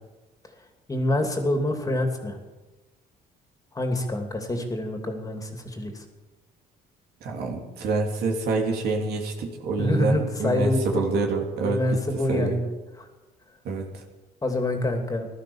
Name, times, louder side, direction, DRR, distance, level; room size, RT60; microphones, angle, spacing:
voice 1, 0.9-2.4 3.7-6.0 9.8-11.0 11.6-13.1 14.4-15.3, left 1 dB, 20° left, 4 dB, 2.8 m, -26 dB
voice 2, 7.2-12.0 12.3-12.6 13.6-14.0, right 3 dB, 70° right, 2 dB, 3.1 m, -27 dB
15.5 x 13.0 x 7.2 m, 1.2 s
cardioid pair, 110°, 17 cm